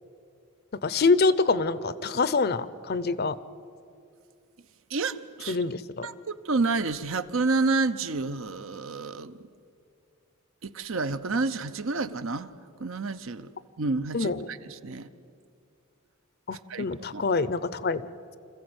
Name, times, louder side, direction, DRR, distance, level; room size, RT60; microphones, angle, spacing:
voice 1, 0.8-3.4 5.5-6.1 14.1-14.5 16.5-18.1, left 4 dB, 45° left, 16 dB, 0.7 m, -25 dB
voice 2, 4.9-5.6 6.0-9.4 10.6-12.5 12.8-13.5 13.8-15.1 16.7-17.2, right 3 dB, 65° right, 12 dB, 0.8 m, -29 dB
26.5 x 15.0 x 8.0 m, 2.4 s
head